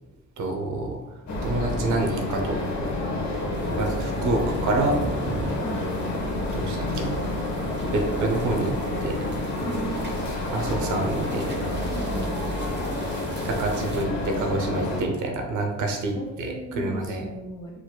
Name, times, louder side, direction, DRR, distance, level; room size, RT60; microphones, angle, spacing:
voice 1, 0.4-2.6 3.6-5.0 6.5-7.2 7.9-8.7 9.0-9.2 10.5-11.5 13.4-17.2, right 2 dB, 75° right, 2 dB, 0.8 m, -27 dB
sound 1, 1.3-15.0, left 1 dB, 65° left, 1.3 m, -29 dB
sound 2, 3.5-14.1, right 2 dB, 35° right, 0.8 m, -40 dB
voice 2, 9.6-10.0 11.9-12.4 16.1-17.7, right 1 dB, 15° left, -3 dB, 1.4 m, -36 dB
4.7 x 4.1 x 2.3 m, 1.0 s
cardioid pair, 90°, 30 cm